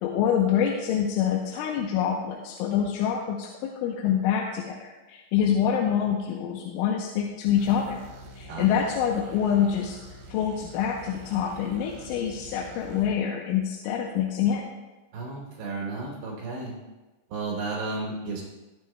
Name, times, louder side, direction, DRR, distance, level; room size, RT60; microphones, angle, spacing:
voice 1, 0.0-8.0 8.4-10.0 10.3-14.6, left 8 dB, 80° left, 0 dB, 3.2 m, -26 dB
sound 1, 7.6-13.1, equal, 85° right, 4.2 m, -46 dB
voice 2, 15.1-16.8 17.3-18.4, right 3 dB, 65° right, -2 dB, 4.9 m, -33 dB
20.5 x 9.0 x 2.2 m, 1.1 s
omnidirectional pair, 5.7 m